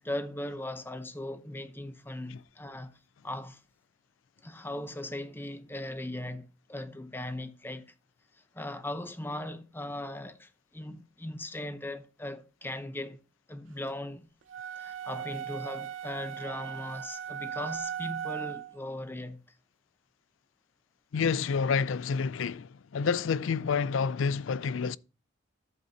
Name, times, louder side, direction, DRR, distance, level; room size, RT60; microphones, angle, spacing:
voice 1, 0.0-3.6 4.4-7.9 8.3-13.2 13.5-14.3 14.8-19.4, left 1 dB, 10° left, 0.7 m, -39 dB
sound 1, 14.5-18.8, right 9 dB, 70° right, 0.6 m, -38 dB
voice 2, 21.1-25.0, left 5 dB, 70° left, 0.4 m, -28 dB
11.0 x 8.0 x 2.8 m
head